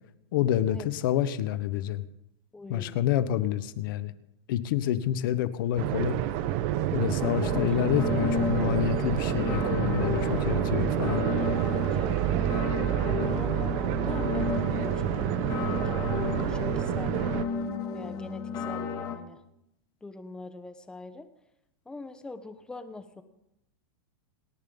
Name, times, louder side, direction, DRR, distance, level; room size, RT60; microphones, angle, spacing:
voice 1, 0.3-2.0 2.7-4.1 4.5-6.2 6.9-11.3, left 11 dB, 55° left, 13 dB, 1.2 m, -28 dB
voice 2, 2.5-3.1 7.4-7.7 7.9-8.1 10.3-10.7 11.4-12.2 13.0-17.2 17.9-19.4 20.0-21.3 21.8-23.2, left 3 dB, 5° left, 10 dB, 1.0 m, -44 dB
sound 1, 5.8-17.4, right 12 dB, 40° right, 1.0 m, -28 dB
sound 2, 7.2-19.2, left 5 dB, 25° left, 2.0 m, -33 dB
28.5 x 10.5 x 4.0 m, 0.83 s
supercardioid pair, 160°, 14 cm